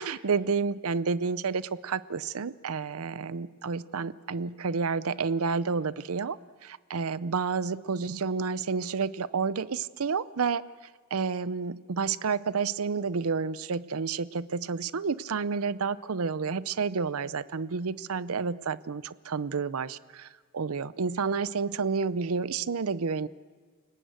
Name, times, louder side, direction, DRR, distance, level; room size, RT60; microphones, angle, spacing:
voice 1, 0.0-6.4 6.6-10.6 11.1-20.3 20.5-23.3, right 5 dB, 85° right, 17 dB, 0.6 m, -30 dB
29.5 x 18.5 x 7.9 m, 1.5 s
head